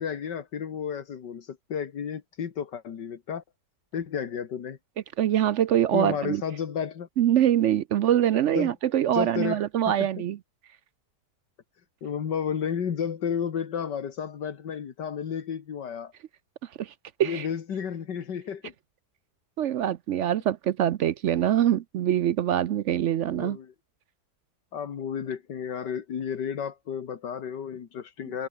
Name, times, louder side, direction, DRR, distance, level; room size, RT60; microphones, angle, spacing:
voice 1, 0.0-3.4 3.9-4.8 5.9-7.1 8.5-8.7 9.1-9.6 12.0-16.1 17.2-18.7 23.3-23.7 24.7-28.5, left 7 dB, 85° left, 2.3 m, -32 dB
voice 2, 5.2-6.4 7.2-10.4 16.8-16.9 17.2-17.5 19.6-23.6, right 11 dB, 65° right, 0.7 m, -24 dB
omnidirectional pair, 1.8 m